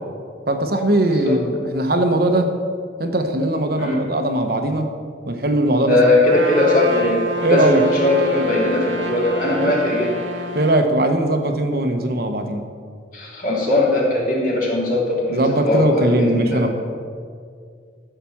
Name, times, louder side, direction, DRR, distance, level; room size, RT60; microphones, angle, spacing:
voice 1, 0.5-2.5 3.0-4.9 5.3-6.1 7.4-7.9 9.6-9.8 10.5-12.7 15.3-16.7, right 1 dB, 55° right, 6 dB, 1.0 m, -20 dB
voice 2, 5.9-7.2 7.5-10.1 13.1-16.6, left 2 dB, 45° left, -4 dB, 3.1 m, -19 dB
Trumpet, 6.2-10.8, equal, 85° right, 1.2 m, -28 dB
13.5 x 5.9 x 7.1 m, 2.2 s
head